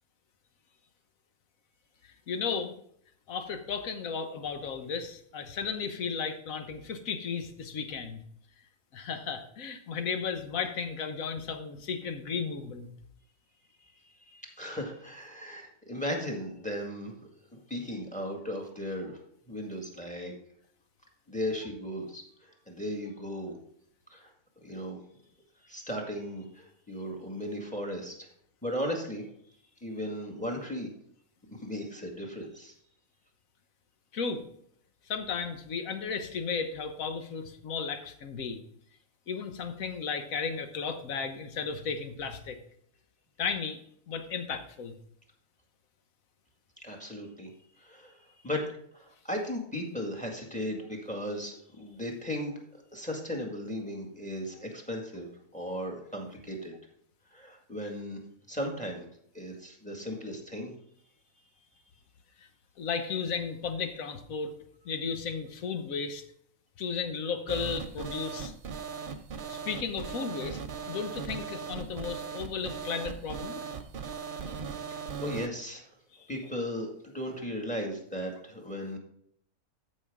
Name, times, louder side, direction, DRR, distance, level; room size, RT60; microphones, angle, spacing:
voice 1, 2.3-2.7 3.3-8.2 8.9-12.9 34.1-34.4 35.1-38.6 39.3-42.6 43.4-43.8 44.1-44.9 62.4-62.5 62.8-64.6 64.8-66.2 66.8-68.5 69.5-70.6 70.9-73.6 76.2-76.3, left 5 dB, 65° left, 8 dB, 1.4 m, -34 dB
voice 2, 14.0-17.1 17.7-19.1 19.5-20.3 21.3-23.6 24.1-24.3 24.6-25.0 25.6-28.3 28.6-29.2 29.8-30.9 31.5-32.7 46.8-47.5 47.8-48.7 48.9-56.7 57.3-58.2 58.5-59.1 59.3-60.7 75.2-75.9 76.3-79.0, equal, 5° left, 1 dB, 1.8 m, -36 dB
sound 1, 67.5-75.5, right 6 dB, 50° right, 0.6 m, -38 dB
13.5 x 5.5 x 3.6 m, 0.68 s
omnidirectional pair, 1.5 m